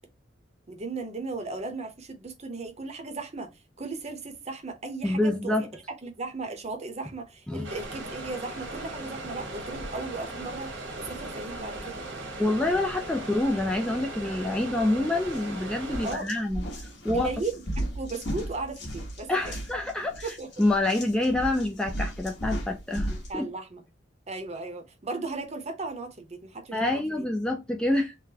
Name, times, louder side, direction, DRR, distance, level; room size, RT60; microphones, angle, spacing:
voice 1, 0.7-3.5 3.8-5.7 6.0-12.1 16.0-16.3 17.1-17.6 18.0-19.3 20.2-20.5 23.3-23.8 24.3-26.8 27.2-27.3, right 3 dB, 35° right, 0.7 m, -36 dB
voice 2, 5.0-5.6 7.5-7.7 12.4-17.4 19.3-23.5 26.7-28.2, left 1 dB, 5° left, 0.3 m, -27 dB
sound 1, 7.6-16.2, right 2 dB, 80° right, 1.2 m, -38 dB
sound 2, 15.2-15.4 15.8-23.3, right 1 dB, 65° left, 1.3 m, -35 dB
3.9 x 2.1 x 2.7 m
head